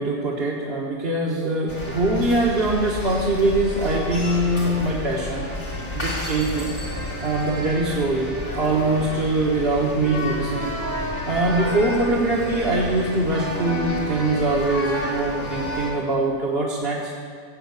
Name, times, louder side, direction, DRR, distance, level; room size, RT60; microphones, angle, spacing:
voice 1, 0.0-5.5 5.9-6.7 7.2-17.1, right 2 dB, 60° right, -4 dB, 1.6 m, -23 dB
sound 1, 1.7-15.9, left 1 dB, 85° left, 3.2 m, -30 dB
16.0 x 7.9 x 8.1 m, 2.3 s
omnidirectional pair, 1.2 m